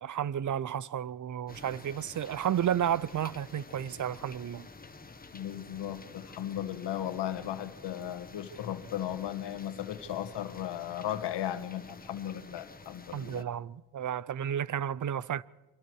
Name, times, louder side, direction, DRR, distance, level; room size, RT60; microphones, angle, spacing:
voice 1, 0.0-4.7 13.1-15.4, right 9 dB, 45° right, 0.6 m, -32 dB
sound 1, 1.5-13.4, left 3 dB, 20° left, 1.6 m, -50 dB
voice 2, 5.3-13.5, left 11 dB, 80° left, 1.7 m, -36 dB
28.5 x 23.0 x 4.7 m
cardioid pair, 85°, 41 cm